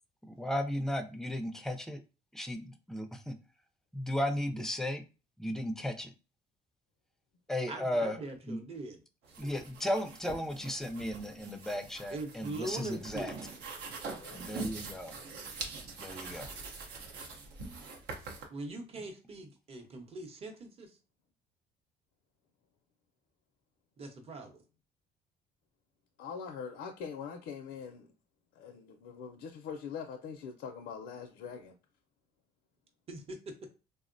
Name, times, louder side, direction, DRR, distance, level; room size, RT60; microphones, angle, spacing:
voice 1, 0.3-2.0 2.3-3.3 3.9-5.0 5.4-6.1 7.5-8.2 8.5-8.6 9.4-13.3 14.3-15.1 16.0-16.5, left 1 dB, 5° left, 0.4 m, -35 dB
voice 2, 7.7-9.0 12.1-13.4 18.5-21.0 24.0-24.6 33.1-33.4, right 2 dB, 35° right, 0.7 m, -42 dB
sound 1, 9.2-18.4, right 4 dB, 80° right, 0.7 m, -44 dB
voice 3, 14.2-14.8 26.2-28.1 28.5-31.8, left 6 dB, 75° left, 0.4 m, -43 dB
3.6 x 2.0 x 2.5 m
cardioid pair, 110°, 17 cm